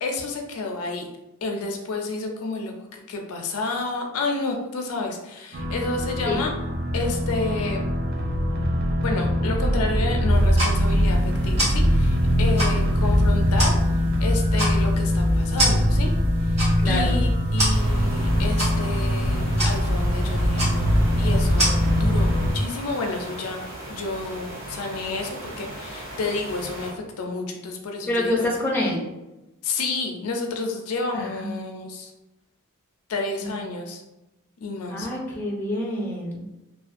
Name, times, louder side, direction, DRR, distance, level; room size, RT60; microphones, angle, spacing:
voice 1, 0.0-1.1 1.4-6.5 6.9-7.8 9.0-13.8 14.2-16.1 16.4-16.6 16.8-23.6 23.9-28.5 29.6-32.1 33.1-34.0 34.6-35.1, left 3 dB, 80° left, 3 dB, 0.4 m, -30 dB
sound 1, 5.5-22.5, equal, 50° right, 0.4 m, -22 dB
sound 2, 10.3-21.7, right 1 dB, 30° right, 1.1 m, -31 dB
voice 2, 16.8-17.2 28.1-29.0 31.1-31.7 33.4-33.7 34.9-36.5, left 1 dB, 10° left, -3 dB, 0.5 m, -27 dB
sound 3, 17.7-26.9, right 1 dB, 65° right, 0.8 m, -37 dB
2.4 x 2.2 x 2.4 m, 0.97 s
head